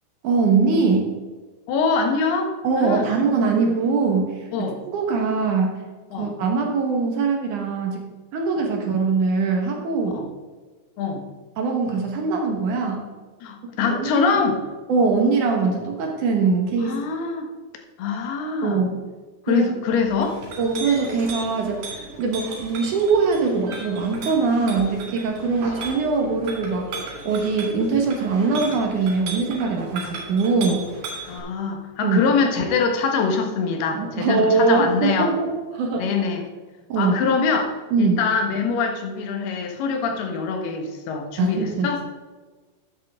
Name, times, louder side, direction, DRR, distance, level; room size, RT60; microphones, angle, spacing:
voice 1, 0.2-1.1 2.6-5.8 6.2-8.0 8.3-10.2 11.6-13.0 13.8-14.4 14.9-17.0 18.6-19.0 19.5-19.7 20.6-30.9 32.0-32.3 33.9-36.1 36.9-37.2 37.9-38.2 41.4-41.9, right 4 dB, 60° right, 1 dB, 2.3 m, -22 dB
voice 2, 1.7-3.1 4.5-4.8 6.1-6.3 10.1-10.3 11.0-11.3 13.4-14.6 16.8-17.5 18.0-18.8 19.5-20.4 28.4-28.6 31.3-35.3 36.0-36.4 36.9-42.0, left 5 dB, 75° left, 4 dB, 3.2 m, -24 dB
Chink clink, 20.1-31.4, right 3 dB, 80° right, 5.6 m, -36 dB
13.0 x 8.6 x 3.7 m, 1.3 s
omnidirectional pair, 4.8 m